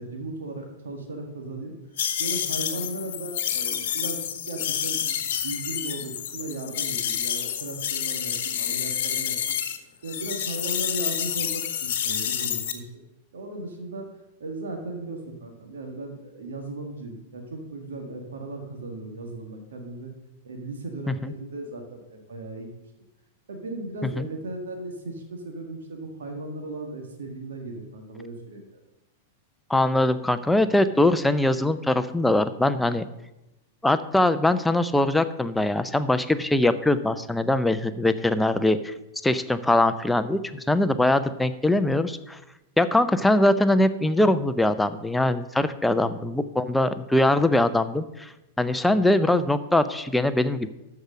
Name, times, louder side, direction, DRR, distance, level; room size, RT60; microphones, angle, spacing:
voice 1, 0.0-1.7 2.2-9.4 10.0-12.9 13.3-14.1 14.4-20.1 20.4-22.7 23.5-28.8 40.5-40.6 45.8-46.1, right 2 dB, 65° right, 3 dB, 1.7 m, -36 dB
sound 1, 2.0-9.8 10.1-12.7, left 9 dB, 55° left, 1.1 m, -29 dB
voice 2, 29.7-33.1 33.8-38.9 39.2-42.4 42.8-48.3 48.6-50.7, left 1 dB, 5° left, 11 dB, 0.6 m, -22 dB
13.0 x 4.8 x 6.3 m, 0.96 s
figure-of-eight pair, 95°, 0 cm